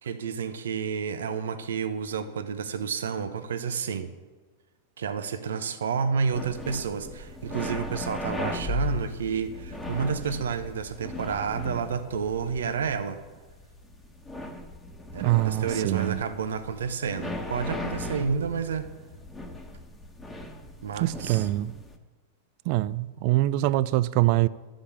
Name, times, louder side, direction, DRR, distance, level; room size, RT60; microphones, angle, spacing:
voice 1, 0.0-4.1 5.0-13.2 15.1-18.9 20.8-21.5, right 6 dB, 80° right, 0.8 m, -30 dB
sound 1, 6.3-22.0, left 2 dB, 15° left, 1.3 m, -37 dB
voice 2, 15.2-16.2 21.0-21.7 22.7-24.5, right 17 dB, 55° right, 0.4 m, -24 dB
11.5 x 5.1 x 7.2 m
hypercardioid pair, 110°, 0 cm